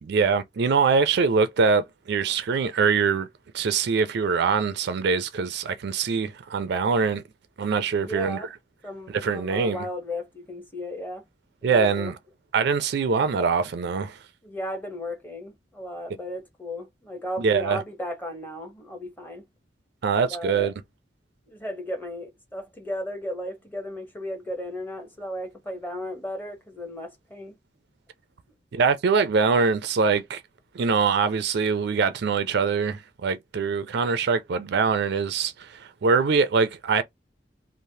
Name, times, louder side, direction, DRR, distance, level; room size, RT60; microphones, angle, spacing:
voice 1, 0.0-3.3 3.5-7.2 7.6-8.4 9.1-9.8 11.6-12.1 12.5-14.2 17.4-17.8 20.0-20.7 28.7-30.4 30.7-37.0, right 5 dB, 65° right, 0.4 m, -23 dB
voice 2, 7.9-8.5 8.8-11.2 11.6-12.1 14.4-19.4 20.3-20.7 21.5-27.6, left 1 dB, 10° left, 0.8 m, -35 dB
3.1 x 2.0 x 2.7 m
head